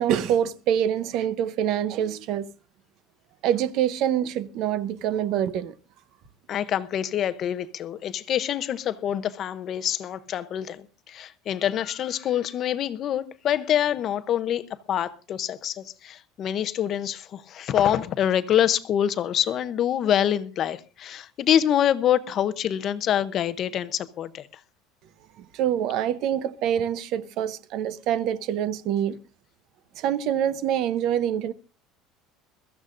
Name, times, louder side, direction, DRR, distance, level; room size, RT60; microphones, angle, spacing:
voice 1, 0.0-2.5 3.4-5.7 25.4-29.2 30.0-31.5, right 10 dB, 45° right, 0.7 m, -25 dB
voice 2, 6.5-24.5, left 10 dB, 30° left, 0.7 m, -26 dB
22.5 x 14.0 x 2.5 m
cardioid pair, 175°, 0 cm